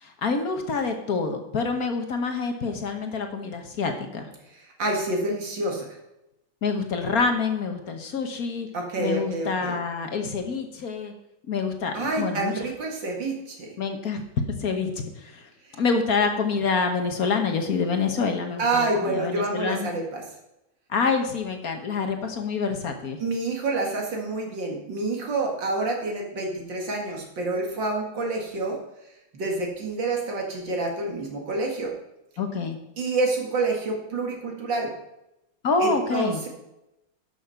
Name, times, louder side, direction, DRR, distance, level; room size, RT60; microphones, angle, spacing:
voice 1, 0.0-4.3 6.6-8.7 9.0-11.1 11.5-12.5 13.8-15.5 15.8-19.9 20.9-23.2 32.4-32.8 35.6-36.4, left 4 dB, 50° left, 5 dB, 1.4 m, -27 dB
voice 2, 4.5-5.9 8.7-9.8 11.9-13.7 15.7-15.8 18.6-20.2 23.2-28.8 29.3-31.9 33.0-34.9 35.8-36.5, right 2 dB, 60° right, 1 dB, 2.6 m, -28 dB
11.5 x 6.4 x 5.6 m, 0.89 s
omnidirectional pair, 2.3 m